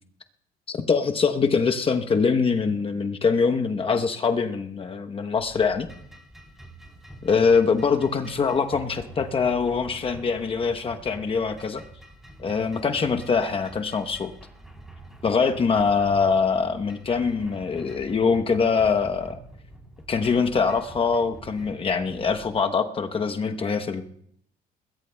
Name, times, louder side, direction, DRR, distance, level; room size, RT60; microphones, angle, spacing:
voice 1, 0.7-5.9 7.2-11.8 12.4-14.3 15.2-19.4 20.1-24.0, left 5 dB, 35° left, 6 dB, 0.9 m, -23 dB
sound 1, 5.4-22.6, right 1 dB, ahead, 3.5 m, -46 dB
21.5 x 20.5 x 2.3 m, 0.69 s
cardioid pair, 110°, 17 cm